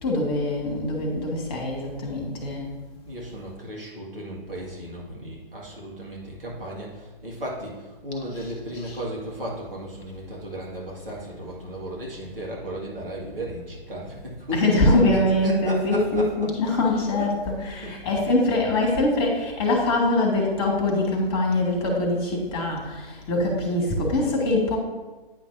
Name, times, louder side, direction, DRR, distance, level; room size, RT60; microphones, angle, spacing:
voice 1, 0.0-2.6 8.3-9.0 14.5-24.8, left 2 dB, 25° left, 0 dB, 1.7 m, -23 dB
voice 2, 3.1-16.7 17.0-17.6 17.8-18.2, right 1 dB, 70° right, -4 dB, 1.9 m, -35 dB
9.4 x 5.7 x 2.7 m, 1.2 s
figure-of-eight pair, 130°, 29 cm